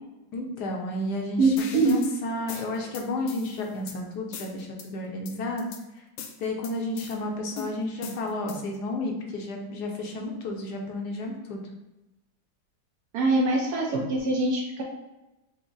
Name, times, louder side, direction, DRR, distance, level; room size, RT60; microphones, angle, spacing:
voice 1, 0.3-5.7 6.4-11.6, left 2 dB, 65° left, 1 dB, 1.1 m, -32 dB
voice 2, 1.4-2.0 13.1-14.8, right 2 dB, 70° right, 0 dB, 0.9 m, -23 dB
sound 1, 1.6-2.1 2.5-4.0 4.3-4.9 5.3-5.8 6.2-7.2 7.6-8.8, left 6 dB, 85° left, 1.4 m, -41 dB
6.0 x 2.1 x 3.9 m, 0.98 s
omnidirectional pair, 2.2 m